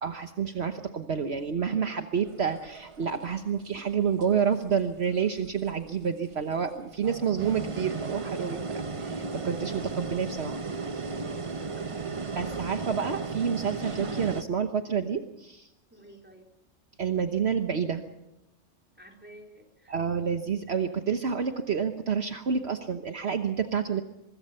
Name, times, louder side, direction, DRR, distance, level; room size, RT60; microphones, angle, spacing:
voice 1, 0.0-10.6 12.4-15.7 17.0-18.0 19.9-24.0, right 6 dB, 60° right, 6 dB, 1.3 m, -29 dB
sound 1, 2.2-3.6 4.2-4.7 5.4-5.9 6.5-14.4, right 4 dB, 30° right, 0.9 m, -35 dB
voice 2, 11.7-12.3 15.9-16.5 18.9-20.0, right 1 dB, 10° right, 1 dB, 4.0 m, -51 dB
24.0 x 22.0 x 5.6 m, 0.88 s
omnidirectional pair, 1.3 m